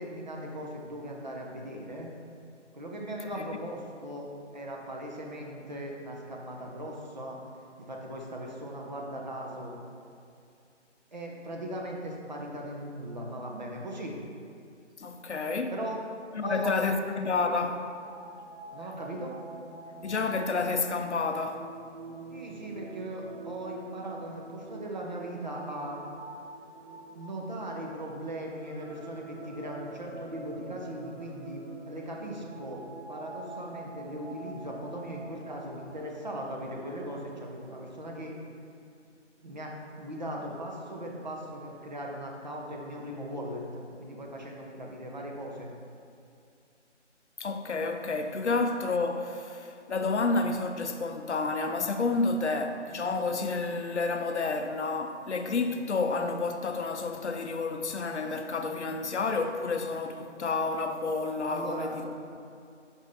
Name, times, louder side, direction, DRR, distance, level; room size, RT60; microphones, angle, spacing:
voice 1, 0.0-2.1 2.7-7.4 7.8-9.8 11.1-14.1 15.7-16.0 16.4-17.1 18.7-19.4 22.3-26.0 27.1-32.8 33.1-38.4 39.4-45.7 61.4-62.0, right 1 dB, 40° right, 0.7 m, -38 dB
voice 2, 15.0-15.7 16.3-17.9 20.0-21.7 47.4-62.1, left 3 dB, 65° left, 0.6 m, -30 dB
sound 1, 17.7-36.0, right 3 dB, 85° right, 1.2 m, -46 dB
6.2 x 5.3 x 3.5 m
figure-of-eight pair, 155°, 36 cm